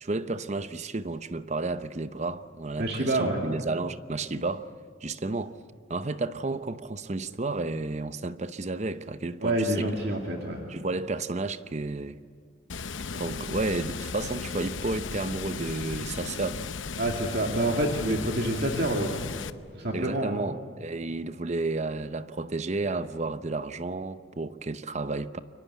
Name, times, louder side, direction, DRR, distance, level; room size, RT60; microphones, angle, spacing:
voice 1, 0.0-4.7 5.0-5.6 5.9-9.9 10.7-12.2 13.1-16.6 19.9-25.4, right 3 dB, 35° right, 0.7 m, -32 dB
voice 2, 2.8-3.4 9.4-10.7 17.0-19.2 19.7-20.4, right 1 dB, 55° right, 2.3 m, -27 dB
Water, 12.7-19.5, left 4 dB, 75° left, 0.9 m, -36 dB
29.5 x 23.5 x 8.3 m
head